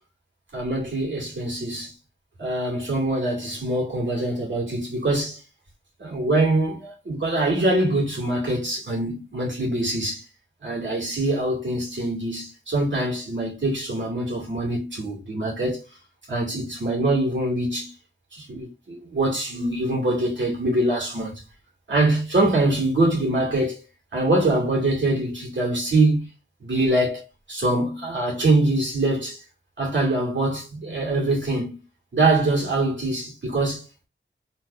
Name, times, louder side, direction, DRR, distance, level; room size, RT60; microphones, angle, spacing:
voice 1, 0.5-1.9 2.4-5.4 6.0-10.2 10.6-15.9 16.3-17.9 18.3-21.4 21.9-23.8 24.1-26.3 26.6-29.4 29.8-31.8 32.1-34.1, right 2 dB, 65° right, 2.6 m, -24 dB
4.7 x 4.0 x 2.7 m
wide cardioid pair, 85°, 21 cm